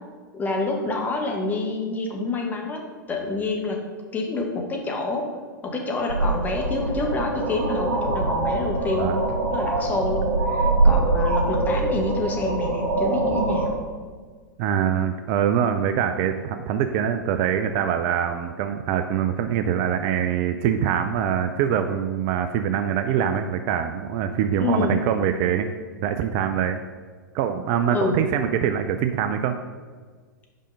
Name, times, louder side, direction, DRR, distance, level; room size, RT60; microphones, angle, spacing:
voice 1, 0.3-3.8 4.1-5.3 5.6-9.2 9.5-13.7 24.6-24.9 27.9-28.2, left 2 dB, 15° left, 1 dB, 1.2 m, -27 dB
sound 1, 6.1-13.7, right 2 dB, 60° right, 1.6 m, -23 dB
voice 2, 14.6-25.7 26.0-26.8 27.3-29.6, right 9 dB, 35° right, 8 dB, 0.4 m, -24 dB
5.5 x 4.9 x 5.3 m, 1.5 s
figure-of-eight pair, 100°, 11 cm